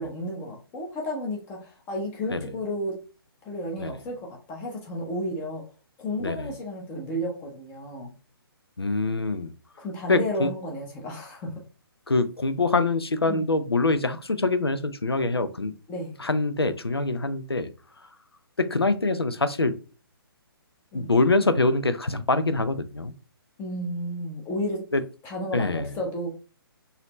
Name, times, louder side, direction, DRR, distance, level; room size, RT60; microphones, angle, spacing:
voice 1, 0.0-3.0 3.4-5.6 6.0-8.1 9.8-11.5 13.3-13.4 15.9-16.2 20.9-21.1 23.6-24.9 25.2-26.3, equal, 15° left, 0 dB, 0.7 m, -32 dB
voice 2, 6.2-6.5 8.8-9.5 10.1-10.5 12.1-15.7 16.2-17.7 18.6-19.7 20.9-23.1 24.9-25.0 25.5-26.0, left 3 dB, 85° left, 11 dB, 0.5 m, -24 dB
4.0 x 2.7 x 2.9 m, 0.36 s
figure-of-eight pair, 135°, 13 cm